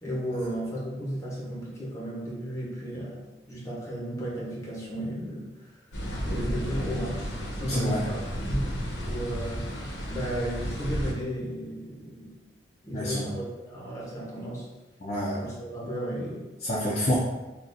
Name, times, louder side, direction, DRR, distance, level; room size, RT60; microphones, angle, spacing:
voice 1, 0.0-5.7 6.2-8.8 9.0-9.7 10.1-12.4 12.8-14.7 15.3-16.5, equal, 15° left, -6 dB, 0.9 m, -34 dB
sound 1, 5.9-11.1, equal, 70° left, 0.8 m, -32 dB
voice 2, 7.6-8.1 12.9-13.3 15.0-15.4 15.8-15.9 16.6-17.1, equal, 35° left, -7 dB, 0.5 m, -28 dB
4.0 x 2.4 x 2.5 m, 1.1 s
head